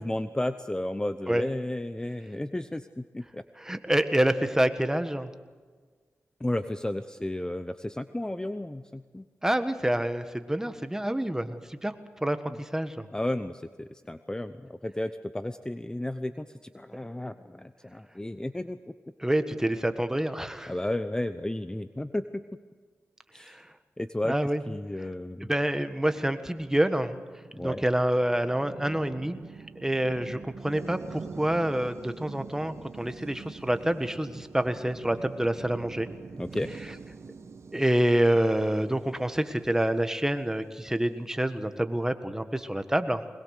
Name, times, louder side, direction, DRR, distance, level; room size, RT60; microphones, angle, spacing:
voice 1, 0.0-3.4 6.4-9.3 12.5-12.6 13.1-16.5 16.7-18.8 20.7-22.4 23.3-23.6 24.0-24.3 24.7-25.5 27.5-27.8 36.4-36.7, left 1 dB, 15° left, 10 dB, 0.8 m, -33 dB
voice 2, 3.6-5.3 9.4-11.9 12.2-13.1 19.2-20.7 23.4-23.7 24.2-24.6 25.4-27.2 27.6-29.4 29.8-36.1 37.7-43.2, right 1 dB, 10° right, 9 dB, 1.5 m, -27 dB
sound 1, 26.5-40.7, right 5 dB, 65° right, 1.6 m, -45 dB
22.0 x 21.0 x 6.6 m, 1.5 s
cardioid pair, 55°, 5 cm